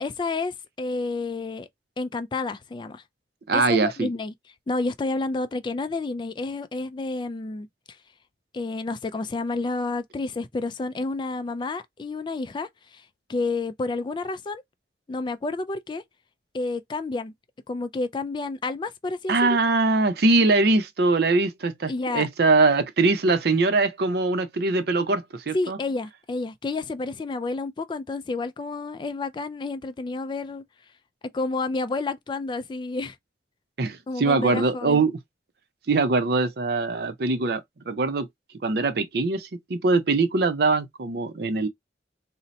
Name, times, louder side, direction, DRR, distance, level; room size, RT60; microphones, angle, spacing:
voice 1, 0.0-1.7 2.0-3.0 3.5-4.3 4.7-7.7 8.5-13.0 13.3-14.6 15.1-16.0 16.5-17.3 17.7-19.5 21.9-22.3 25.5-30.6 31.3-33.2 34.1-35.0, left 3 dB, 25° left, 0.3 m, -30 dB
voice 2, 3.5-4.1 19.3-25.8 33.8-35.1 35.9-38.3 38.6-41.7, right 3 dB, 60° right, 0.5 m, -22 dB
2.7 x 2.1 x 3.9 m
head